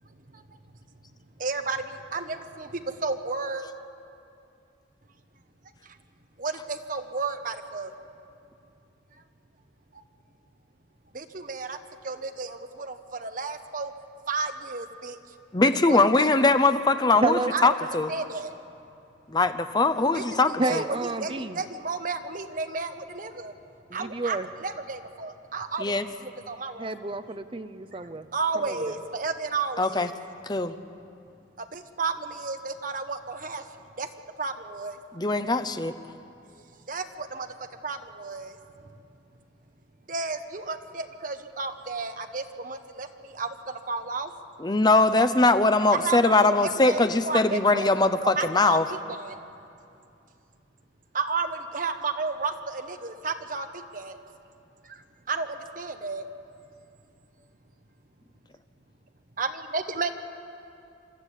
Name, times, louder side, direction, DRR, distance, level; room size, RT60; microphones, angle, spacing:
voice 1, 1.4-1.8 2.1-3.6 6.4-7.9 11.1-11.8 12.0-13.9 14.3-15.2 15.7-16.0 17.5-17.8 18.1-18.5 20.1-23.5 23.9-25.9 26.2-27.2 28.3-30.1 31.7-33.6 34.0-34.1 34.4-35.0 36.9-37.5 37.8-38.5 40.1-44.3 45.9-47.9 48.2-49.4 51.1-54.2 55.3-56.2 59.4-60.1, right 4 dB, 45° right, 8 dB, 1.0 m, -32 dB
voice 2, 15.5-18.1 19.3-20.8 25.8-26.1 29.8-30.1 30.5-30.7 35.1-35.9 44.6-48.8, left 3 dB, 20° left, 10 dB, 0.7 m, -21 dB
voice 3, 17.2-17.5 20.6-21.6 23.9-24.5 26.8-28.3 28.5-29.0, right 2 dB, 25° right, 11 dB, 0.6 m, -30 dB
25.5 x 12.5 x 8.4 m, 2.6 s
head